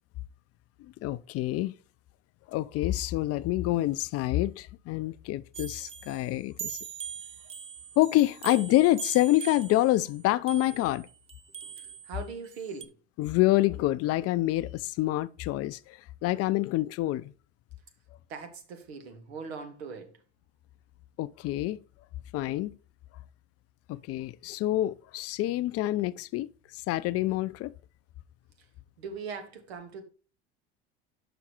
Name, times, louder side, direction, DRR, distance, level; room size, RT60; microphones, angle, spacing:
voice 1, 0.8-1.7 2.5-6.8 8.0-11.1 13.2-17.3 21.2-21.8 22.3-22.7 23.9-26.5 26.7-27.7, left 16 dB, 50° left, 0.5 m, -27 dB
sound 1, 5.5-12.9, right 8 dB, 20° right, 0.5 m, -42 dB
voice 2, 11.6-12.9 18.3-20.2 28.6-28.7 29.0-30.0, right 5 dB, 90° right, 1.3 m, -41 dB
6.0 x 5.1 x 4.3 m
hypercardioid pair, 85°, 31 cm